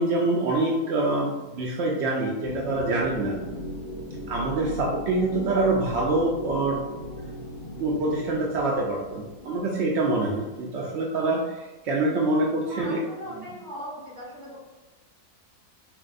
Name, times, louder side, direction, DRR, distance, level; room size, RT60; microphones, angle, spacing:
voice 1, 0.0-3.4 4.3-6.8 7.8-13.0, right 2 dB, 65° right, -3 dB, 0.7 m, -25 dB
sound 1, 2.4-10.9, left 1 dB, 65° left, 0.7 m, -38 dB
voice 2, 12.7-14.6, equal, 30° right, -7 dB, 1.7 m, -39 dB
5.9 x 2.3 x 2.4 m, 1.1 s
omnidirectional pair, 1.6 m